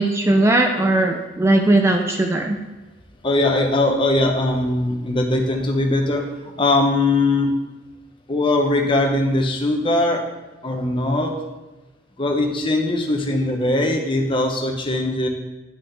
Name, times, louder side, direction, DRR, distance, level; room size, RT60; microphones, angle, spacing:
voice 1, 0.0-2.6, right 2 dB, 15° right, 3 dB, 0.3 m, -18 dB
voice 2, 3.2-7.5 8.3-10.2 10.6-11.3 12.2-15.3, left 2 dB, 25° left, 2 dB, 0.7 m, -20 dB
10.0 x 4.1 x 3.3 m, 1.1 s
head